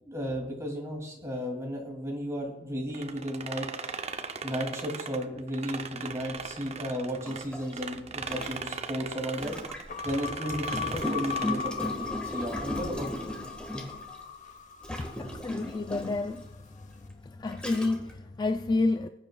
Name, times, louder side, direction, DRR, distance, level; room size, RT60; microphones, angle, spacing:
voice 1, 0.0-3.7 4.4-9.6 10.0-12.1 12.3-13.6, equal, 15° right, 2.5 m, -34 dB
sound 1, 2.9-7.4 7.7-11.8, right 5 dB, 35° right, 0.6 m, -39 dB
Gurgling, 6.4-6.5 7.2-10.0 10.6-14.2 14.8-16.3 17.0-17.1 17.5-18.1, equal, 5° left, 1.5 m, -37 dB
sound 2, 9.9-16.2, left 7 dB, 45° left, 0.7 m, -38 dB
voice 2, 14.9-16.5 16.8-16.9 17.2-19.1, left 3 dB, 25° left, 0.3 m, -30 dB
20.0 x 9.3 x 2.3 m
head